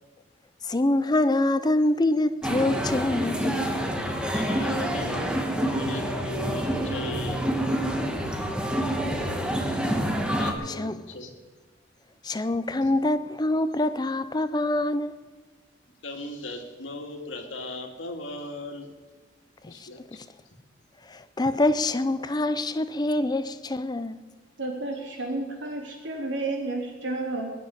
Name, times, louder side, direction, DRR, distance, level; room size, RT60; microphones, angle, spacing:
voice 1, 0.6-3.7 10.7-11.0 12.2-15.2 19.6-20.3 21.1-24.2, left 2 dB, 20° left, 0.5 m, -25 dB
Large hall with crowd and bongos, 2.4-10.5, equal, 5° right, 1.5 m, -27 dB
voice 2, 4.3-5.5 5.7-7.5 10.2-11.3 12.8-12.9 16.0-18.9 19.7-20.0, left 2 dB, 85° left, 2.4 m, -38 dB
voice 3, 24.6-27.5, right 2 dB, 75° right, 3.8 m, -31 dB
20.5 x 6.9 x 10.0 m
head